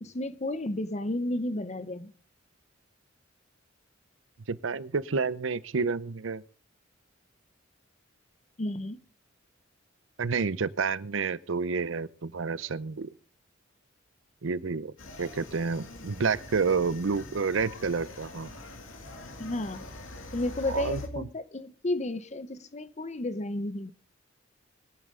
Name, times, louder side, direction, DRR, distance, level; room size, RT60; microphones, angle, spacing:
voice 1, 0.0-2.1 8.6-9.0 19.4-19.9 20.3-23.9, left 1 dB, 35° left, 0.7 m, -32 dB
voice 2, 4.5-6.4 10.2-13.1 14.4-14.9 15.2-18.5 20.7-21.3, right 4 dB, 75° right, 0.6 m, -29 dB
sound 1, 15.0-21.1, left 2 dB, 80° left, 2.4 m, -44 dB
22.5 x 8.9 x 3.8 m
head